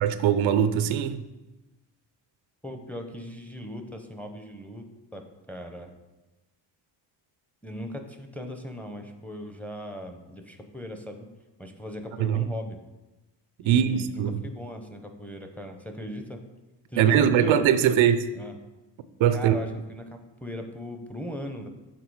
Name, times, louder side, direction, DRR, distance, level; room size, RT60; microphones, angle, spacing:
voice 1, 0.0-1.2 12.2-12.4 13.7-14.4 17.0-18.2 19.2-19.6, right 9 dB, 85° right, 12 dB, 0.6 m, -21 dB
voice 2, 2.6-4.8 5.1-6.0 7.6-11.3 11.6-12.8 13.6-16.4 16.9-17.9 18.3-18.5 19.3-21.7, equal, 5° left, 5 dB, 0.6 m, -38 dB
7.5 x 3.7 x 4.7 m, 1.1 s
cardioid pair, 115°, 46 cm